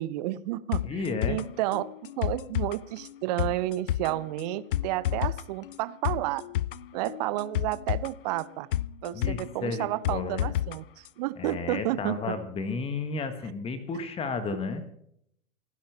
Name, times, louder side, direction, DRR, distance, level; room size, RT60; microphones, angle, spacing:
voice 1, 0.0-6.4 6.9-8.7 9.0-12.2, right 16 dB, 30° right, 17 dB, 0.7 m, -31 dB
sound 1, 0.7-10.8 11.1-11.2, left 12 dB, 40° left, 0.4 m, -31 dB
voice 2, 0.8-1.4 9.1-10.5 11.4-14.8, left 4 dB, 15° left, 11 dB, 1.4 m, -33 dB
28.5 x 10.5 x 3.4 m, 0.72 s
figure-of-eight pair, 105°, 42 cm